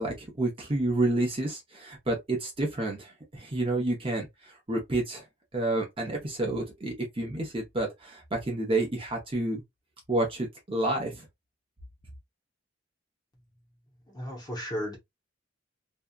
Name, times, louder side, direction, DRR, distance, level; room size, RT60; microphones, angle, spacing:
voice 1, 0.0-5.2 5.5-9.6 10.1-11.3, right 2 dB, 30° right, 0.8 m, -29 dB
voice 2, 14.1-15.0, equal, 20° left, 0.8 m, -34 dB
2.7 x 2.3 x 2.3 m
head